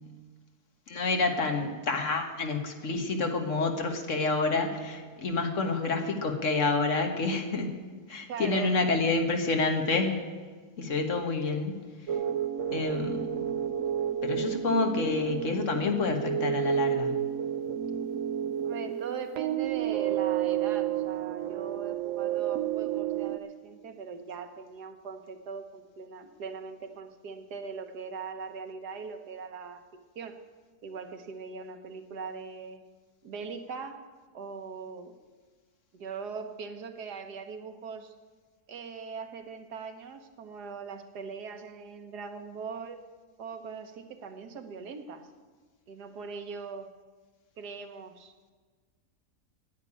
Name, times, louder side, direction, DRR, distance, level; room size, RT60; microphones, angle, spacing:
voice 1, 0.9-7.7 8.1-10.2 10.8-11.8 12.7-13.2 14.2-17.1, left 3 dB, 50° left, 4 dB, 1.7 m, -28 dB
voice 2, 8.3-8.9 18.6-30.4 30.8-32.8 33.2-34.0 34.3-35.1 35.9-38.1 38.7-43.0 43.4-45.3 45.9-46.9 47.6-48.3, right 5 dB, 85° right, 7 dB, 1.6 m, -40 dB
sound 1, 12.1-23.4, right 10 dB, 65° right, 0.9 m, -31 dB
9.6 x 9.3 x 9.9 m, 1.4 s
omnidirectional pair, 1.7 m